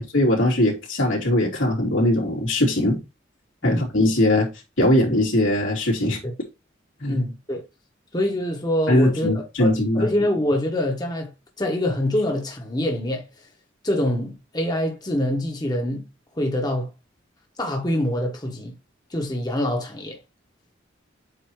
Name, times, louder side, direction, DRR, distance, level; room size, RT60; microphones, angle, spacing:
voice 1, 0.0-3.0 3.6-4.5 4.8-6.2 7.0-7.2 8.9-10.1, left 1 dB, 85° left, 3.1 m, -20 dB
voice 2, 7.1-7.7 8.1-11.3 11.6-13.3 13.8-16.1 16.4-16.9 17.6-18.7 19.1-20.2, left 1 dB, 20° left, 1.3 m, -25 dB
8.1 x 2.9 x 4.6 m
head